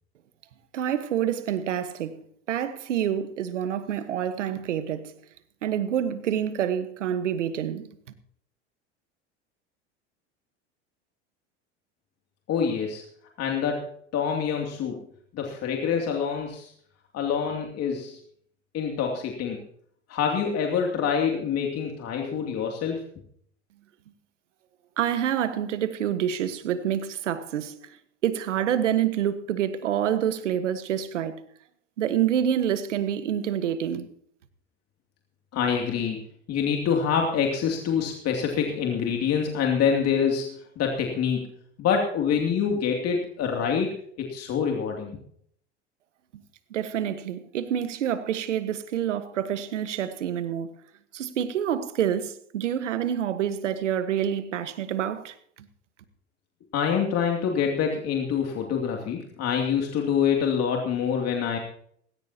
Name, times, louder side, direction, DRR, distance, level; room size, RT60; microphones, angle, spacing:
voice 1, 0.7-2.1 2.5-5.1 5.6-7.9 25.0-27.8 28.2-31.4 32.0-34.1 46.7-50.7 51.1-55.3, right 9 dB, 85° right, 1.4 m, -27 dB
voice 2, 12.5-13.0 13.4-15.0 15.3-16.7 17.1-18.2 18.7-19.6 20.1-23.1 35.5-36.2 36.5-41.5 41.8-43.9 44.2-45.2 56.7-61.6, left 7 dB, 45° left, 2.8 m, -26 dB
18.0 x 17.0 x 2.9 m
hypercardioid pair, 90°, 35 cm